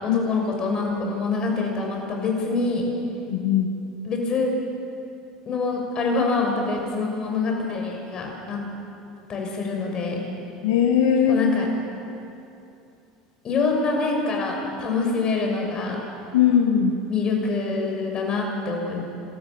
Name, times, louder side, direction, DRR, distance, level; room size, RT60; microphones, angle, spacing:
voice 1, 0.0-2.8 4.0-4.5 5.5-8.6 9.3-10.2 11.3-11.7 13.4-16.0 17.1-19.0, left 4 dB, 40° left, 1 dB, 6.5 m, -25 dB
voice 2, 3.3-3.7 10.6-11.4 16.3-17.0, left 8 dB, 75° left, 2 dB, 1.6 m, -19 dB
27.0 x 13.5 x 7.2 m, 2.8 s
hypercardioid pair, 80°, 2 cm